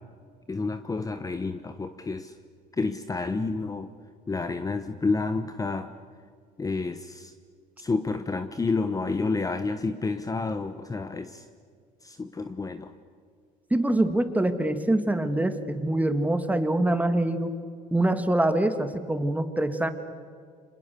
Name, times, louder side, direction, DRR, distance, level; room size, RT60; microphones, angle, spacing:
voice 1, 0.5-2.3 2.8-3.9 4.3-5.9 6.6-7.3 7.8-11.4 12.0-12.9, left 3 dB, 20° left, 10 dB, 1.1 m, -29 dB
voice 2, 13.7-17.5 17.9-19.9, right 1 dB, 10° right, 8 dB, 2.1 m, -24 dB
29.0 x 26.0 x 6.9 m, 2.1 s
cardioid pair, 100°, 17 cm